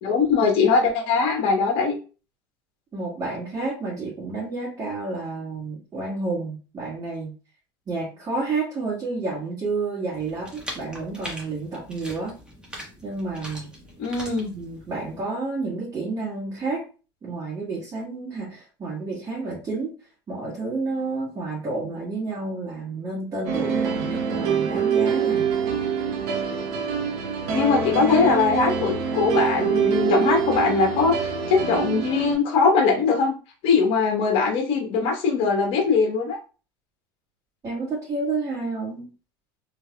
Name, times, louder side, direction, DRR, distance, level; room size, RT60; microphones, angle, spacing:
voice 1, 0.0-1.9 14.0-14.5 27.5-33.3 33.6-36.4, left 5 dB, 55° left, 1 dB, 1.2 m, -21 dB
voice 2, 2.9-7.3 7.9-12.3 13.0-13.7 14.5-16.9 17.2-19.9 20.3-25.4 37.6-39.1, right 3 dB, 30° right, -8 dB, 1.8 m, -30 dB
sound 1, 10.1-15.2, equal, 10° right, 1.3 m, -41 dB
sound 2, 23.4-32.3, right 6 dB, 65° right, 1.0 m, -25 dB
3.3 x 3.3 x 2.3 m, 0.34 s
supercardioid pair, 90°, 11 cm